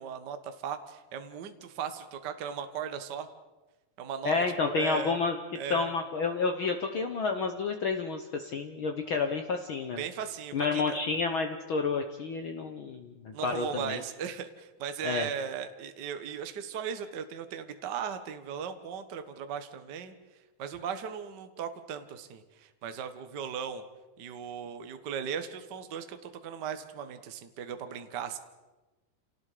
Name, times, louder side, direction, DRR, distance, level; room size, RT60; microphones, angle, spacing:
voice 1, 0.0-3.3 4.0-5.2 5.5-5.9 10.0-11.0 13.3-20.1 20.6-23.8 24.2-28.4, right 7 dB, 55° right, 8 dB, 1.2 m, -37 dB
voice 2, 4.2-5.4 5.7-10.0 10.5-14.0 15.0-15.3, left 4 dB, 70° left, 6 dB, 1.2 m, -30 dB
28.0 x 18.5 x 5.0 m, 1.1 s
omnidirectional pair, 3.8 m